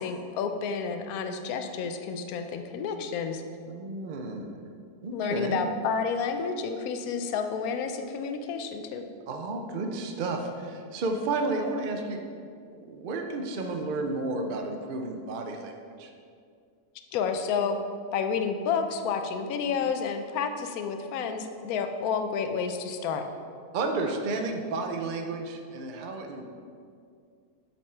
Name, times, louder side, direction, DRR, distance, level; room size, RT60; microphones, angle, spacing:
voice 1, 0.0-3.4 5.1-9.0 17.1-17.8 18.1-23.3, left 6 dB, 70° left, 7 dB, 1.0 m, -30 dB
voice 2, 3.7-4.7 5.0-5.7 9.3-12.2 12.7-15.7 16.0-16.1 23.7-26.5, right 3 dB, 70° right, 3 dB, 0.4 m, -32 dB
7.4 x 4.4 x 5.5 m, 2.2 s
omnidirectional pair, 1.7 m